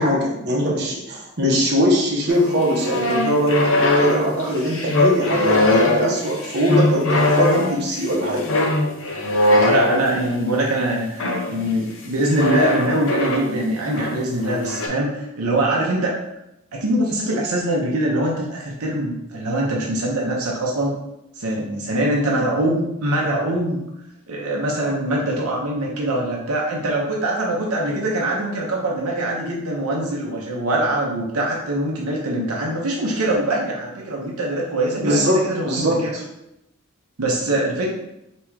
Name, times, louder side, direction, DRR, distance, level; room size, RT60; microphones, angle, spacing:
voice 1, 0.0-8.5 34.9-36.2, equal, 50° right, -3 dB, 1.0 m, -21 dB
sound 1, 2.3-10.4 11.2-11.5 12.3-13.5 13.8-14.9, left 2 dB, 60° left, 0.7 m, -20 dB
voice 2, 9.5-16.1 16.7-20.9 21.3-23.8 24.3-36.1 37.2-37.9, right 1 dB, 80° right, -2 dB, 0.8 m, -23 dB
3.5 x 3.0 x 4.6 m, 0.85 s
head